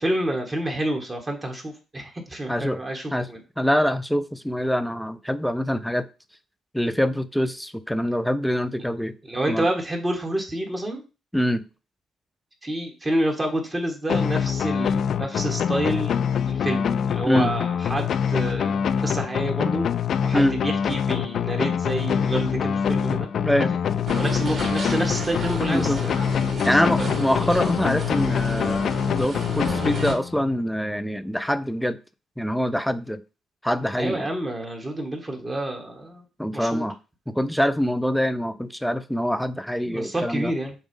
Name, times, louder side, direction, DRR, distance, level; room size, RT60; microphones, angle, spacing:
voice 1, 0.0-3.4 9.3-11.0 12.6-16.2 16.5-19.9 20.2-23.3 24.1-26.2 26.7-27.1 33.9-36.2 36.5-36.8 39.8-40.7, right 1 dB, 20° right, 2 dB, 1.6 m, -28 dB
voice 2, 2.5-2.8 3.1-3.3 3.6-6.1 6.7-9.1 9.5-9.7 11.3-11.6 17.2-17.5 20.3-20.6 23.4-23.7 25.7-26.0 26.6-32.0 32.4-33.2 33.6-34.3 36.4-37.0 37.3-40.5, equal, ahead, 12 dB, 0.5 m, -24 dB
sound 1, 14.1-30.6, left 7 dB, 65° left, 0.4 m, -25 dB
sound 2, 24.1-30.2, right 3 dB, 45° right, 2.6 m, -33 dB
7.2 x 2.4 x 5.3 m, 0.31 s
cardioid pair, 90°, 0 cm